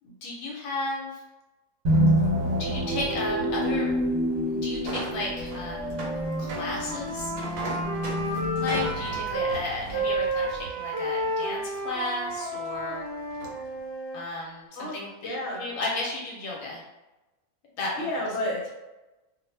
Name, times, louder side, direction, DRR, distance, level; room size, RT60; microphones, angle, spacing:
voice 1, 0.0-1.2 2.5-3.9 4.5-5.9 6.4-7.3 8.6-13.1 14.1-14.7 14.9-16.8 17.8-18.1, left 2 dB, 85° left, -3 dB, 1.0 m, -34 dB
sound 1, 1.9-10.6, equal, 55° right, 0.8 m, -28 dB
sound 2, 4.8-11.3 11.7-11.8 12.3-12.8 13.2-13.7, right 2 dB, 90° right, 1.0 m, -39 dB
Wind instrument woodwind instrument, 6.0-9.6 9.9-14.2, right 1 dB, 15° right, 0.6 m, -31 dB
voice 2, 14.7-15.7 17.9-18.7, left 1 dB, 60° left, -2 dB, 0.9 m, -31 dB
2.3 x 2.0 x 3.1 m, 1.0 s
omnidirectional pair, 1.4 m